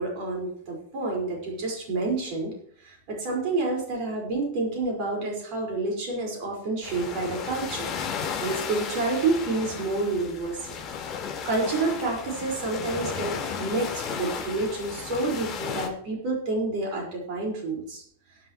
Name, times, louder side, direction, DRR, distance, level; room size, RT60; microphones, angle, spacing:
voice 1, 0.0-2.5 2.8-7.9 8.4-10.8 11.4-18.0, right 3 dB, 45° right, -1 dB, 5.0 m, -29 dB
sound 1, 6.8-15.9, left 6 dB, 35° left, 4.2 m, -34 dB
21.5 x 9.0 x 3.1 m, 0.65 s
figure-of-eight pair, 90°, 0 cm